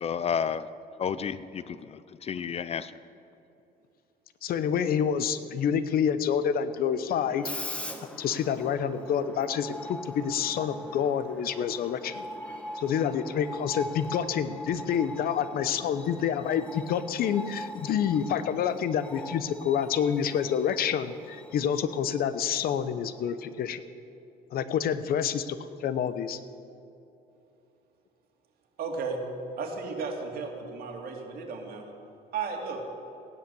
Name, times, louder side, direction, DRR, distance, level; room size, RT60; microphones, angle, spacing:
voice 1, 0.0-3.0, left 7 dB, 35° left, 15 dB, 0.5 m, -32 dB
voice 2, 4.4-7.5 8.2-12.2 12.7-23.8 24.5-26.4, left 8 dB, 60° left, 13 dB, 0.8 m, -28 dB
Screech, 7.1-23.7, left 1 dB, 5° left, 1.2 m, -42 dB
voice 3, 28.8-29.2 29.6-31.9 32.3-32.8, right 4 dB, 65° right, 1 dB, 2.6 m, -34 dB
15.5 x 10.5 x 7.0 m, 2.8 s
cardioid pair, 110°, 17 cm